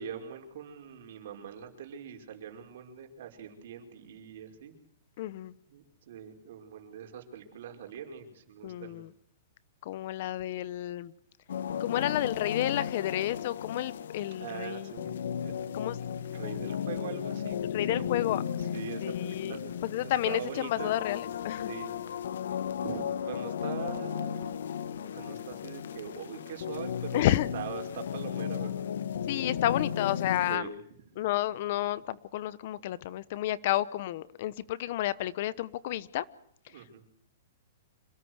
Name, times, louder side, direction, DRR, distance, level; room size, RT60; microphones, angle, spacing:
voice 1, 0.0-4.7 5.7-9.0 14.4-18.2 18.6-19.7 20.0-20.9 21.7-22.0 22.8-24.6 24.9-27.2 27.5-28.9 30.5-30.8 36.7-37.0, right 8 dB, 55° right, 4 dB, 5.4 m, -42 dB
voice 2, 5.2-5.5 8.6-9.1 9.8-11.1 11.8-14.9 15.7-16.0 17.7-18.4 19.0-19.6 19.8-21.7 27.1-27.5 29.3-30.7 31.2-36.2, left 14 dB, 45° left, 18 dB, 1.0 m, -31 dB
sound 1, 11.5-30.6, left 8 dB, 75° left, 1.6 m, -35 dB
27.0 x 17.5 x 8.1 m, 0.66 s
hypercardioid pair, 165°, 0 cm